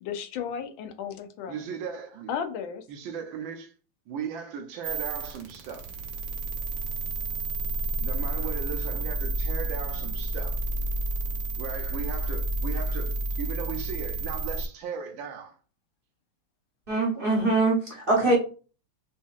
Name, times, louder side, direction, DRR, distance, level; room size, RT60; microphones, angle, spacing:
voice 1, 0.0-1.7 2.3-2.8, left 7 dB, 85° left, 1.4 m, -34 dB
voice 2, 1.5-2.3 2.9-3.7 4.1-5.9 8.0-10.6 11.6-15.6 18.2-18.4, right 6 dB, 85° right, 1.5 m, -37 dB
sound 1, 4.8-14.7, right 2 dB, 60° right, 1.2 m, -30 dB
voice 3, 16.9-18.4, right 2 dB, 40° right, 0.7 m, -23 dB
5.0 x 2.7 x 2.4 m
omnidirectional pair, 2.1 m